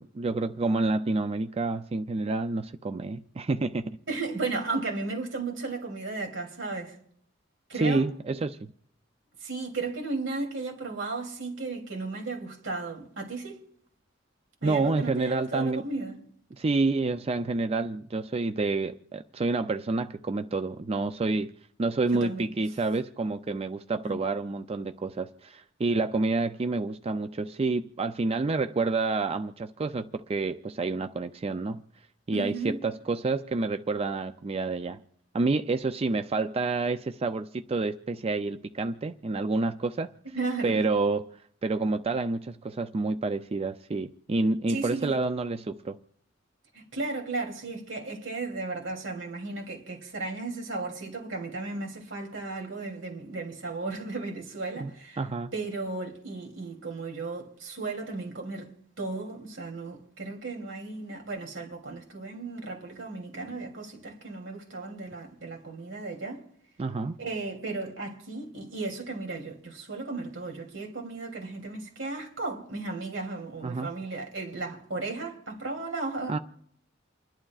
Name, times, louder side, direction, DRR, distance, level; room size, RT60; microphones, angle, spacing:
voice 1, 0.1-4.0 7.7-8.7 14.6-15.9 16.6-21.5 21.8-31.8 32.3-35.0 35.3-40.1 40.6-46.0 54.8-54.9 55.2-55.5 66.8-67.2 73.6-73.9 76.3-76.4, right 3 dB, 30° right, 0.4 m, -28 dB
voice 2, 4.1-7.0 7.7-8.0 9.4-13.6 14.6-16.2 22.1-22.4 24.0-24.1 32.3-32.8 40.3-40.8 44.7-45.2 46.7-55.2 55.5-66.4 67.2-76.4, right 3 dB, 75° right, 2.9 m, -35 dB
29.0 x 11.0 x 2.4 m
head